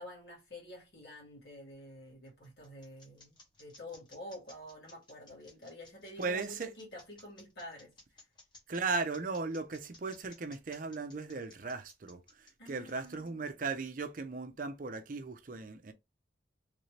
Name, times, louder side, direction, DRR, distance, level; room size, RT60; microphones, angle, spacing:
voice 1, 0.0-8.2 12.6-13.4, left 1 dB, 60° left, 2.0 m, -49 dB
sound 1, 2.0-13.9, left 2 dB, 25° left, 1.0 m, -58 dB
voice 2, 6.2-6.7 8.7-15.9, right 4 dB, 50° right, 0.6 m, -37 dB
3.3 x 2.7 x 3.1 m
head